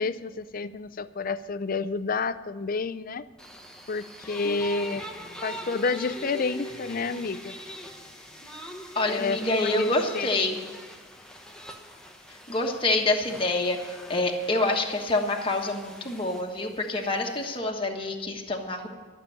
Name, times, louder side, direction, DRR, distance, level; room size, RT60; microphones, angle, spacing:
voice 1, 0.0-3.3 3.9-5.0 5.4-7.5 9.1-10.3, left 4 dB, 45° left, 14 dB, 0.5 m, -30 dB
sound 1, 3.4-17.6, equal, 5° left, 1.1 m, -43 dB
voice 2, 8.9-10.6 12.3-18.9, left 2 dB, 25° left, 1 dB, 1.3 m, -27 dB
12.5 x 6.8 x 10.0 m, 1.4 s
head